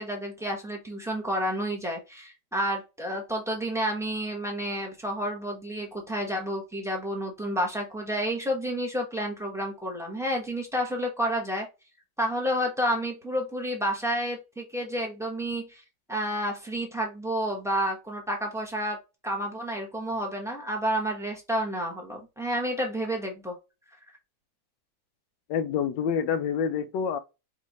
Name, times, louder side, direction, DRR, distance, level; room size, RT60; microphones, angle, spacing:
voice 1, 0.0-11.7 12.2-15.8 16.1-19.0 19.2-23.6, equal, ahead, 0.9 m, -30 dB
voice 2, 25.5-27.2, left 7 dB, 90° left, 1.3 m, -27 dB
5.2 x 2.8 x 2.9 m
omnidirectional pair, 1.9 m